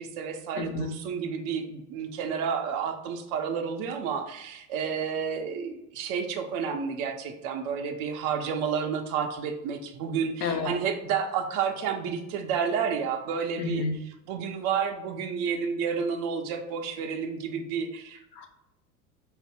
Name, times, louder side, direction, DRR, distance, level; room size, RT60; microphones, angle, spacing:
voice 1, 0.0-13.9 14.3-18.2, right 6 dB, 35° right, 5 dB, 0.5 m, -30 dB
voice 2, 0.5-0.9 10.4-10.7 13.6-14.0 18.3-18.5, left 3 dB, 85° left, 6 dB, 0.6 m, -30 dB
4.1 x 2.0 x 3.5 m, 0.86 s
figure-of-eight pair, 80°, 46 cm